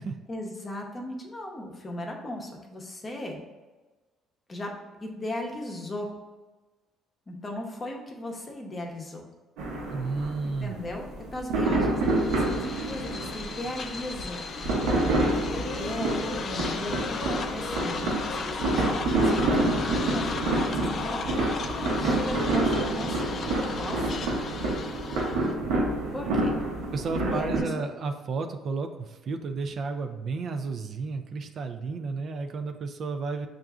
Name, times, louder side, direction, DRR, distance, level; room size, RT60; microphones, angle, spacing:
voice 1, 0.3-3.4 4.5-4.7 5.0-6.1 7.3-9.2 10.4-14.4 15.0-23.2 23.6-24.0 26.1-26.6 27.1-27.7, left 1 dB, 30° left, 1 dB, 0.7 m, -37 dB
sound 1, 9.6-27.6, right 2 dB, 90° right, 0.8 m, -28 dB
voice 2, 9.9-10.7 26.9-33.5, right 4 dB, 50° right, 7 dB, 0.3 m, -32 dB
sound 2, 12.0-25.5, left 5 dB, 50° left, 0.3 m, -36 dB
6.4 x 2.4 x 2.3 m, 1.2 s
cardioid pair, 100°, 0 cm